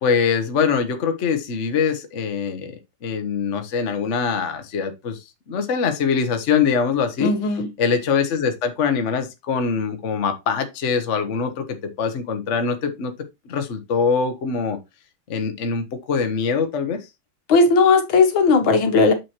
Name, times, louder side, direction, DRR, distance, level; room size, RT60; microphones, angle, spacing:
voice 1, 0.0-5.2 5.5-7.3 7.8-11.6 12.0-13.1 13.4-14.8 15.3-17.0, left 6 dB, 45° left, 1.1 m, -23 dB
voice 2, 7.2-7.7 17.5-19.1, left 4 dB, 65° left, 1.9 m, -16 dB
7.3 x 5.9 x 3.0 m
omnidirectional pair, 2.4 m